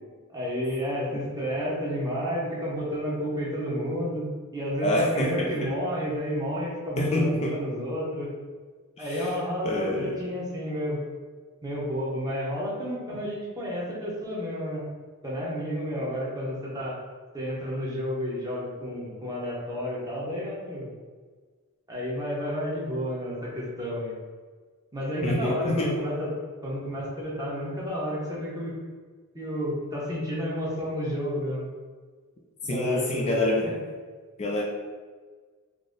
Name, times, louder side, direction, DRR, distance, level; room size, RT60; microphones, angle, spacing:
voice 1, 0.3-8.3 9.0-11.0 11.6-14.8 15.2-16.9 17.3-20.9 21.9-24.1 24.9-26.3 26.6-28.8 29.3-31.7 32.6-33.5, equal, 15° right, -6 dB, 0.9 m, -31 dB
voice 2, 4.8-5.7 7.0-7.6 9.0-9.3 9.6-10.2 25.2-26.0 32.6-33.7 34.4-34.6, left 1 dB, 30° left, -1 dB, 0.3 m, -27 dB
3.8 x 2.0 x 3.7 m, 1.5 s
head